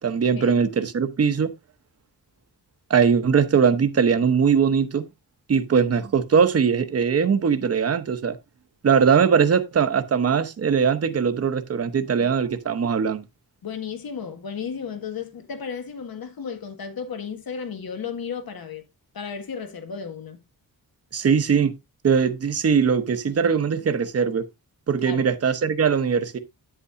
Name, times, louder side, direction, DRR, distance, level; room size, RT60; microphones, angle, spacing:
voice 1, 0.0-1.5 2.9-5.1 5.5-8.4 8.8-13.2 21.1-21.7 22.0-24.4 24.9-26.4, right 6 dB, 40° right, 0.8 m, -21 dB
voice 2, 13.6-18.8 19.1-20.4 25.0-25.3, left 6 dB, 75° left, 1.7 m, -34 dB
9.0 x 8.4 x 2.6 m
wide cardioid pair, 170°, 37 cm